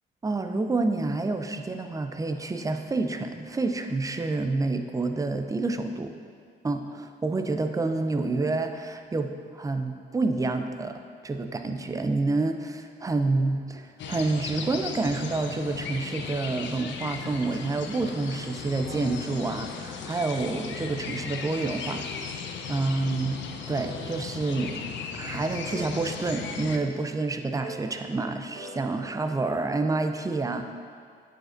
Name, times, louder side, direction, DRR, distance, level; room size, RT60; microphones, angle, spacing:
voice 1, 0.2-6.1 6.6-22.4 22.7-23.4 23.7-24.8 25.1-30.7, right 3 dB, 15° right, 7 dB, 0.4 m, -28 dB
sound 1, 14.0-26.8, left 6 dB, 70° left, 0.6 m, -36 dB
Dream Hits, 21.9-23.1 23.3-23.4 23.8-25.3 25.7-27.1 27.6-29.4, right 2 dB, 70° right, 1.3 m, -45 dB
9.3 x 5.1 x 2.6 m, 2.2 s
cardioid pair, 90°, 20 cm